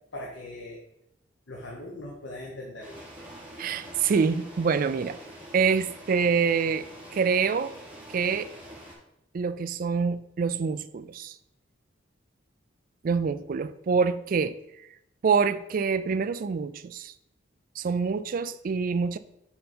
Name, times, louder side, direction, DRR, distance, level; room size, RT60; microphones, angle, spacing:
voice 1, 0.1-0.8 1.5-3.0, left 1 dB, 75° left, -2 dB, 1.1 m, -40 dB
sound 1, 2.8-8.9, equal, 10° right, 2.0 m, -45 dB
voice 2, 3.6-5.2 5.5-7.7 8.1-8.5 9.3-11.3 13.0-14.6 15.2-17.1 17.8-19.2, right 5 dB, 45° right, 13 dB, 0.3 m, -26 dB
5.7 x 5.3 x 4.3 m, 0.81 s
head